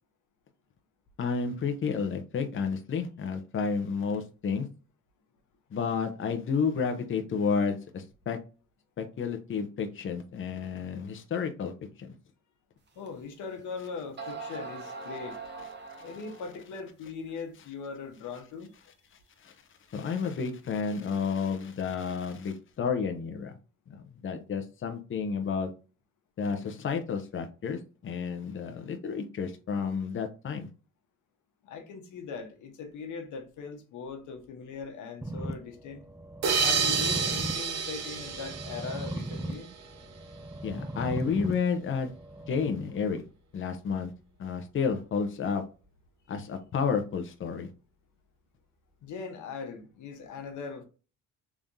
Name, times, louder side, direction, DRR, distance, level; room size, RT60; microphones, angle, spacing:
voice 1, 1.2-4.7 5.7-8.4 9.0-11.7 12.0-12.1 19.4-19.5 19.9-23.5 23.9-25.7 26.4-30.7 40.6-42.1 42.5-43.2 43.5-44.1 44.4-45.6 46.3-47.7, left 5 dB, 40° left, 0.8 m, -31 dB
voice 2, 13.0-15.4 16.0-18.7 31.6-36.0 36.6-39.7 49.0-50.8, left 5 dB, 80° left, 1.0 m, -40 dB
sound 1, 13.1-13.2 13.8-13.9 14.2-16.6, right 4 dB, 35° right, 1.2 m, -41 dB
sound 2, 35.2-43.2, right 1 dB, 10° right, 0.5 m, -39 dB
sound 3, 36.4-39.8, right 5 dB, 60° right, 1.0 m, -29 dB
3.6 x 3.4 x 2.7 m
cardioid pair, 90°, 30 cm